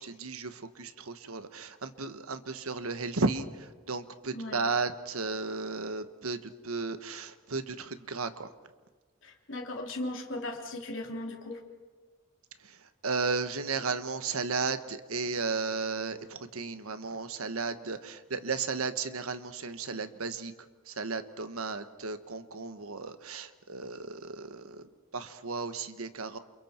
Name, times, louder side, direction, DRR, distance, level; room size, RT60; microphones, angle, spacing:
voice 1, 0.0-8.5 12.6-20.5 20.8-24.9 25.1-26.4, right 4 dB, 90° right, 10 dB, 1.3 m, -34 dB
voice 2, 4.3-4.6 9.2-11.7, left 1 dB, 65° left, 0 dB, 3.4 m, -37 dB
29.0 x 28.5 x 4.5 m, 1.3 s
head